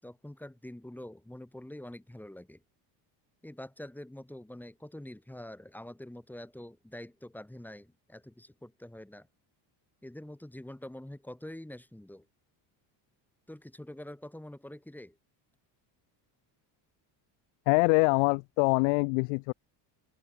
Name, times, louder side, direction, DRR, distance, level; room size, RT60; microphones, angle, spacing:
voice 1, 0.0-2.6 3.4-9.3 10.0-12.3 13.5-15.2, left 1 dB, 5° left, 7.9 m, -45 dB
voice 2, 17.7-19.5, left 40 dB or more, 90° left, 0.9 m, -24 dB
open air
cardioid pair, 135°, 47 cm